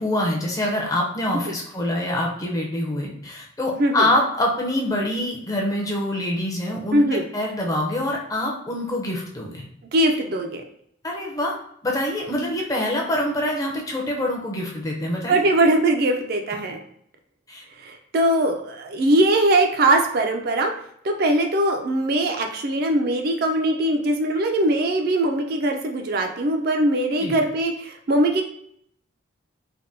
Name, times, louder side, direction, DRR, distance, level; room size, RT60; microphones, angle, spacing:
voice 1, 0.0-9.7 11.0-11.6 11.8-15.7 17.5-17.6 27.2-27.4, left 1 dB, 20° left, -1 dB, 0.5 m, -25 dB
voice 2, 6.9-7.2 9.9-10.6 15.3-16.8 17.8-20.7 21.0-28.4, right 1 dB, 50° right, 3 dB, 0.4 m, -21 dB
3.4 x 2.2 x 2.6 m, 0.69 s
head